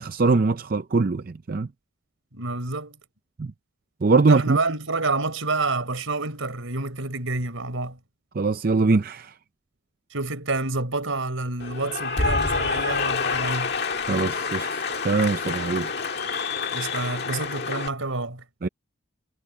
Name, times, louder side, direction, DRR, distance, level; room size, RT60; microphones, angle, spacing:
voice 1, 0.0-1.7 3.4-3.5 4.0-4.6 8.4-9.3 14.1-15.9 18.6-18.7, right 3 dB, 45° right, 0.5 m, -22 dB
voice 2, 2.3-3.0 4.3-8.0 10.1-13.7 16.7-18.4, right 3 dB, 80° right, 4.1 m, -28 dB
Cheering / Applause, 11.6-17.9, left 4 dB, 50° left, 1.9 m, -27 dB
head